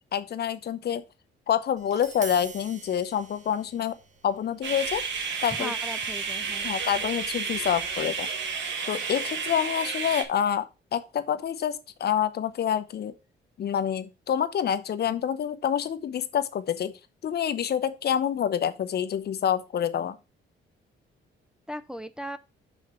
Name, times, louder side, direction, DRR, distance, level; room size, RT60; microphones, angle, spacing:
voice 1, 0.1-1.0 1.5-4.0 4.2-5.0 5.4-5.7 6.6-8.3 8.9-13.1 13.6-16.9 17.2-20.2, left 9 dB, 55° left, 0.8 m, -27 dB
Tap, 1.8-7.9, right 4 dB, 40° right, 1.3 m, -48 dB
sound 1, 4.6-10.2, right 5 dB, 70° right, 1.6 m, -31 dB
voice 2, 5.5-6.8 21.7-22.4, equal, 5° right, 0.5 m, -38 dB
5.8 x 4.3 x 6.0 m
cardioid pair, 90°, 20 cm